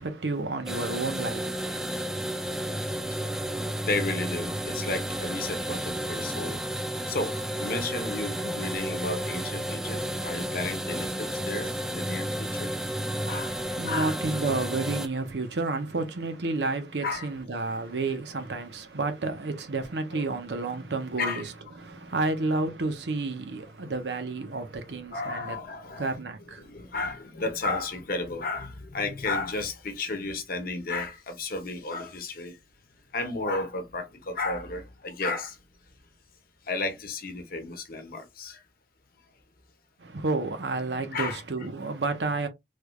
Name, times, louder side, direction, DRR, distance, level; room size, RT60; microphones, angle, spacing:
voice 1, 0.0-1.8 13.5-25.6 26.0-26.7 40.0-42.5, right 3 dB, 75° right, 0.8 m, -31 dB
sound 1, 0.7-15.1, equal, 5° right, 0.3 m, -32 dB
voice 2, 3.9-6.6 7.1-12.7 13.3-14.1 17.0-17.3 20.1-20.2 21.2-21.4 25.1-26.1 26.6-32.5 33.1-35.6 36.7-38.6 41.1-41.4, left 3 dB, 55° left, 0.9 m, -33 dB
3.3 x 3.2 x 2.3 m
head